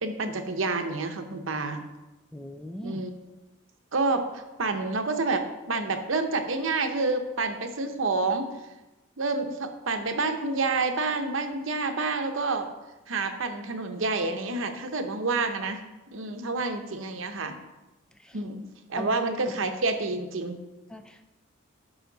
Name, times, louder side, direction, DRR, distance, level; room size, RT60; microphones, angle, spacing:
voice 1, 0.0-1.8 2.8-3.1 3.9-8.5 9.2-12.7 13.1-15.8 16.1-17.6 18.3-18.6 18.9-20.6, right 3 dB, 70° right, 6 dB, 0.8 m, -28 dB
voice 2, 2.3-3.0 18.2-18.4 18.9-19.1 19.5-19.6 20.9-21.3, equal, 5° left, 6 dB, 0.4 m, -39 dB
9.9 x 5.7 x 4.0 m, 1.1 s
head